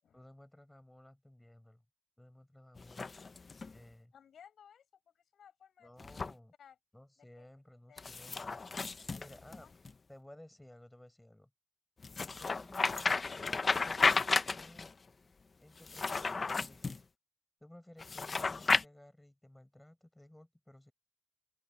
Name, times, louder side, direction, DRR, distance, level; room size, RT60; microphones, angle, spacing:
voice 1, 0.1-1.8 2.2-3.1 3.7-4.1 5.8-6.5 6.9-8.6 9.1-9.7 10.1-11.5 12.4-14.2 14.6-15.0 15.6-17.0 17.6-20.9, left 1 dB, 5° left, 7.3 m, -56 dB
sound 1, 2.8-3.7 6.0-6.3 8.0-9.9 12.0-14.9 15.8-17.0 18.0-18.8, left 4 dB, 30° left, 0.9 m, -33 dB
voice 2, 4.1-6.1 6.6-6.8 7.2-7.5 7.9-8.0 8.8-9.7, left 8 dB, 60° left, 7.5 m, -60 dB
open air
cardioid pair, 90°, 0 cm